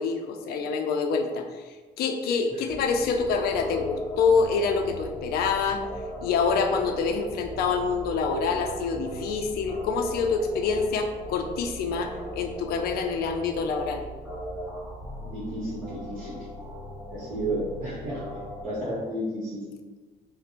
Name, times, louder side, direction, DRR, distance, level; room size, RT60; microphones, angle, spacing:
voice 1, 0.0-1.4 2.0-5.8 6.2-14.0, left 5 dB, 65° left, 5 dB, 0.4 m, -26 dB
sound 1, 2.7-18.6, equal, 5° right, 1.3 m, -39 dB
voice 2, 15.2-16.4 17.1-18.2 18.6-19.6, right 1 dB, 45° right, -9 dB, 0.8 m, -32 dB
2.5 x 2.1 x 2.8 m, 1.3 s
cardioid pair, 110°, 17 cm